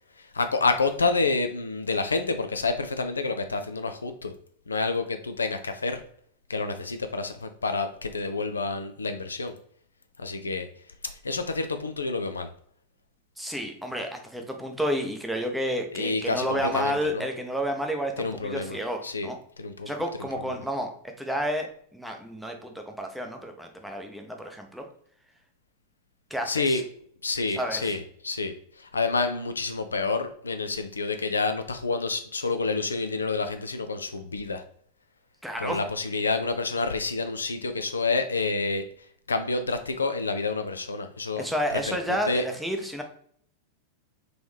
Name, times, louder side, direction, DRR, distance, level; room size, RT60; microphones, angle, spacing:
voice 1, 0.2-4.3 4.7-6.0 6.5-9.6 10.2-10.7 11.2-12.5 15.9-17.2 18.2-18.8 19.0-19.3 19.6-19.9 26.5-26.8 27.2-34.6 35.6-38.8 39.3-41.4 41.7-42.0 42.3-42.4, left 3 dB, 75° left, 8 dB, 0.4 m, -28 dB
voice 2, 13.4-19.4 19.9-20.9 21.2-24.9 26.3-26.8 27.6-27.9 35.4-35.8 41.4-43.0, equal, ahead, 3 dB, 0.6 m, -31 dB
3.8 x 2.9 x 3.2 m, 0.62 s
figure-of-eight pair, 90°, 0 cm